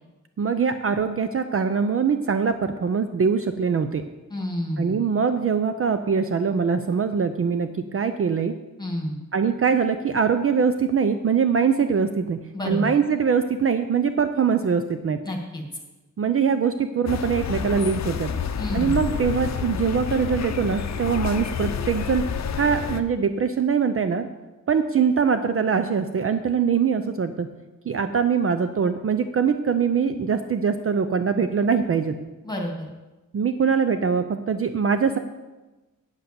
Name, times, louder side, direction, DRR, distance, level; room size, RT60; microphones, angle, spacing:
voice 1, 0.4-4.0 4.8-8.5 9.3-15.2 16.2-18.3 18.7-22.2 22.6-24.3 24.7-27.5 27.9-32.2 33.3-35.2, right 6 dB, 45° right, 9 dB, 0.5 m, -23 dB
voice 2, 4.3-5.0 8.8-9.2 12.5-12.9 15.3-15.6 18.6-19.0 32.4-32.9, left 1 dB, 10° left, 1 dB, 1.8 m, -29 dB
sound 1, 17.1-23.0, left 7 dB, 55° left, 0.6 m, -29 dB
9.0 x 8.1 x 6.8 m, 1.1 s
wide cardioid pair, 170°, 32 cm